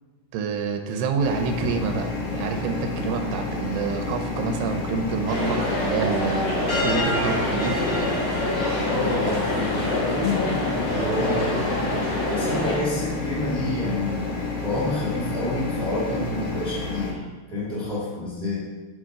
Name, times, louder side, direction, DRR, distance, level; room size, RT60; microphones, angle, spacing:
voice 1, 0.3-6.5 6.8-7.8, right 5 dB, 80° right, 5 dB, 2.7 m, -27 dB
sound 1, 1.2-17.1, left 3 dB, 85° left, 1.3 m, -30 dB
sound 2, 5.3-12.8, left 1 dB, 45° left, 0.8 m, -26 dB
voice 2, 8.8-14.3 14.6-18.6, left 1 dB, 35° right, -6 dB, 0.7 m, -28 dB
8.4 x 3.7 x 6.3 m, 1.2 s
omnidirectional pair, 5.0 m